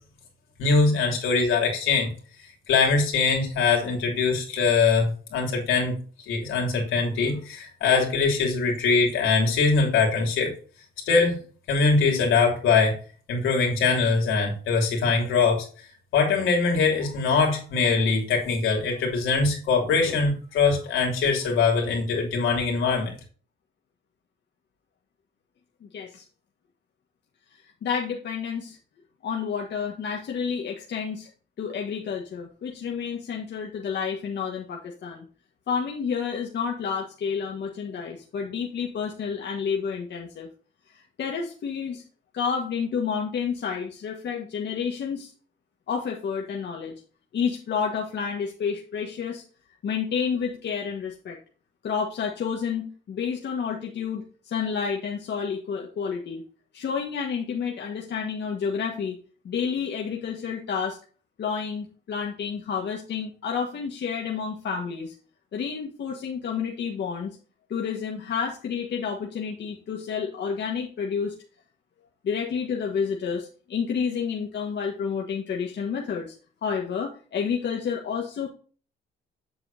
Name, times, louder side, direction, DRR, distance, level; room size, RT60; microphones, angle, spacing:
voice 1, 0.6-2.1 2.7-6.0 6.3-10.5 11.1-11.4 11.7-13.0 13.3-15.7 16.1-23.2, left 4 dB, 85° left, 1 dB, 3.2 m, -22 dB
voice 2, 25.8-26.2 27.8-28.8 29.2-31.3 31.6-35.2 35.7-40.5 40.9-42.0 42.3-45.3 45.9-46.9 47.3-49.4 49.8-51.4 51.8-56.4 56.7-59.2 59.4-61.0 61.4-65.1 65.5-67.3 67.7-71.3 72.2-76.3 76.6-78.5, left 6 dB, 60° left, 0 dB, 1.5 m, -30 dB
7.8 x 7.0 x 2.7 m, 0.40 s
cardioid pair, 90°, 20 cm